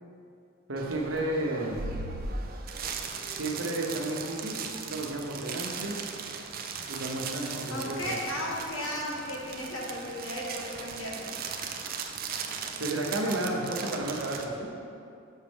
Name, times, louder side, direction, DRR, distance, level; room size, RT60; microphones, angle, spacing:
voice 1, 0.7-1.8 3.3-4.6 4.9-6.0 6.9-8.1 12.8-14.7, right 1 dB, 65° right, -1 dB, 1.0 m, -32 dB
sound 1, 0.8-14.5, right 5 dB, 45° right, 0.5 m, -38 dB
voice 2, 7.7-11.3, left 1 dB, 85° left, -3 dB, 1.5 m, -35 dB
6.5 x 6.4 x 3.5 m, 2.5 s
head